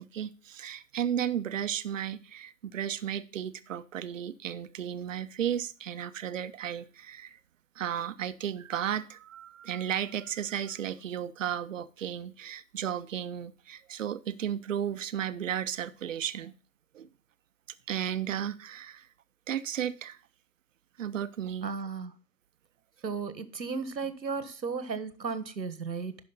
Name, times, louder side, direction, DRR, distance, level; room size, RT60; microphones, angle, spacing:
voice 1, 0.0-7.4 7.8-16.5 16.9-17.1 17.9-19.1 19.5-20.2 21.0-21.7, right 9 dB, 50° right, 0.7 m, -34 dB
voice 2, 21.6-22.1 23.0-26.2, right 5 dB, 90° right, 1.4 m, -35 dB
11.5 x 5.2 x 3.9 m
figure-of-eight pair, 140°, 50 cm